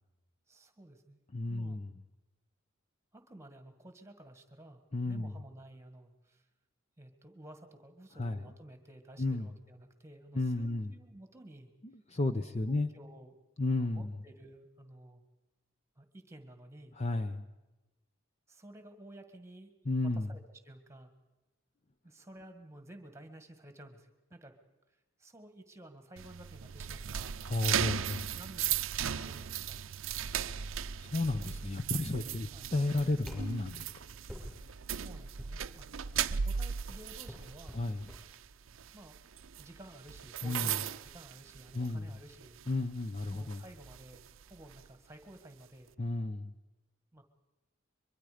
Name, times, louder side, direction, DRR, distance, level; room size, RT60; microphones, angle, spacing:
voice 1, 0.5-1.8 3.1-6.5 7.0-11.7 12.4-13.4 13.7-15.2 16.0-17.0 18.5-19.7 20.0-21.2 22.0-24.6 24.9-27.4 28.3-29.8 32.5-32.7 34.9-37.8 38.9-39.2 39.6-42.6 43.3-45.9 47.1-47.2, right 1 dB, 15° right, 8 dB, 1.6 m, -53 dB
voice 2, 1.3-1.9 4.9-5.3 8.2-8.4 9.2-9.5 10.3-10.9 12.1-12.9 13.6-14.1 17.0-17.4 19.9-20.3 27.5-28.3 30.3-30.4 31.0-33.9 37.7-38.1 40.4-40.7 41.7-42.1 42.7-43.6 46.0-46.5, left 2 dB, 30° left, 9 dB, 0.7 m, -33 dB
sound 1, 26.2-42.1 42.4-42.7 43.2-44.8, right 8 dB, 75° right, 0.6 m, -37 dB
Basket Ball, 31.0-38.4, equal, 5° left, 5.7 m, -51 dB
23.0 x 23.0 x 5.1 m, 1.0 s
head